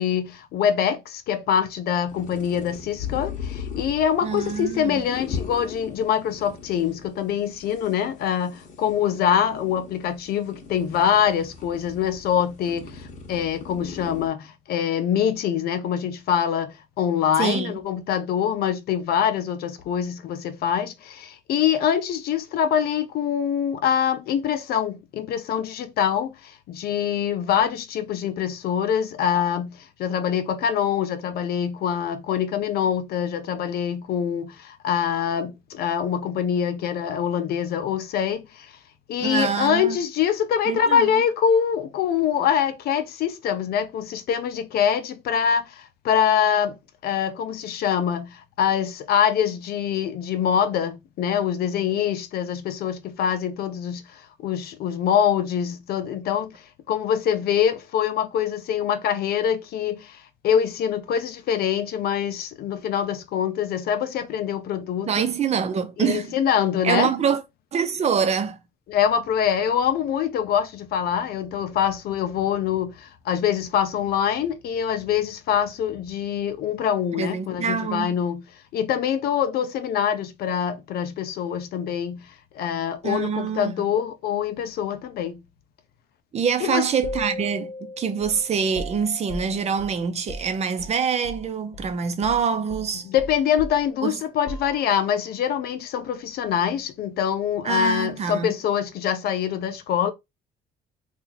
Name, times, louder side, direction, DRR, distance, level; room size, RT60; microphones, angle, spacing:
voice 1, 0.0-38.7 39.1-46.8 47.0-54.0 54.4-65.1 66.0-67.1 68.9-78.4 78.7-82.3 82.5-85.4 86.6-86.9 93.0-100.1, left 8 dB, 65° left, 0.6 m, -24 dB
sound 1, 2.1-14.3, left 6 dB, 50° left, 1.0 m, -38 dB
voice 2, 4.2-5.1 17.4-17.8 39.2-40.0 40.7-41.1 65.1-66.4 66.8-67.4 67.7-68.6 77.1-78.1 83.0-83.9 86.3-93.1 94.0-94.2 97.6-98.6, right 6 dB, 40° right, 0.7 m, -25 dB
sound 2, 87.0-91.5 91.7-91.9 92.2-95.2, left 1 dB, 30° left, 1.1 m, -37 dB
2.8 x 2.4 x 4.1 m
cardioid pair, 110°, 17 cm